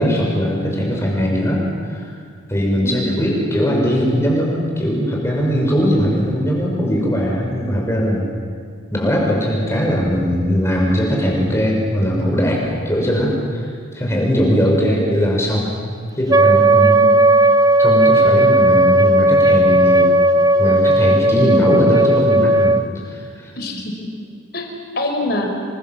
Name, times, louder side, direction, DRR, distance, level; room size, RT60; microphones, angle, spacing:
voice 1, 0.0-2.1 2.5-8.3 8.9-15.7 16.1-17.0 17.8-20.1 20.6-22.8 23.0-23.5, equal, 15° left, -2 dB, 6.3 m, -19 dB
voice 2, 2.8-3.3 14.6-15.0 16.9-17.3 21.4-21.8 23.5-24.1 24.5-24.7 24.9-25.5, left 1 dB, 50° left, 2 dB, 4.7 m, -26 dB
Wind instrument woodwind instrument, 16.3-22.9, right 1 dB, 20° right, 0.6 m, -14 dB
27.5 x 24.0 x 7.5 m, 2.1 s
head